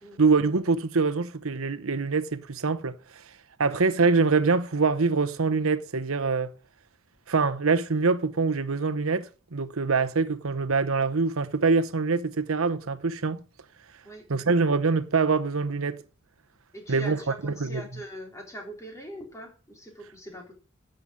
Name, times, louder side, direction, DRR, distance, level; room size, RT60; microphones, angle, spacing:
voice 1, 0.2-3.2 3.6-6.5 7.3-13.4 14.3-16.0 16.9-17.9, right 4 dB, 85° right, 0.9 m, -24 dB
voice 2, 16.7-20.5, right 1 dB, 15° left, 3.8 m, -42 dB
11.0 x 7.8 x 6.4 m
head